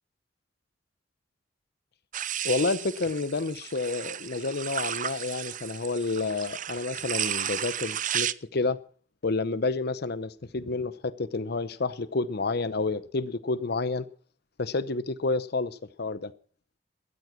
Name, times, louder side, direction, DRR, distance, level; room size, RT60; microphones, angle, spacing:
sound 1, 2.1-8.3, right 10 dB, 45° right, 0.6 m, -33 dB
voice 1, 2.4-8.8 9.2-14.1 14.6-16.3, left 3 dB, 60° left, 0.8 m, -29 dB
14.0 x 13.5 x 6.1 m
head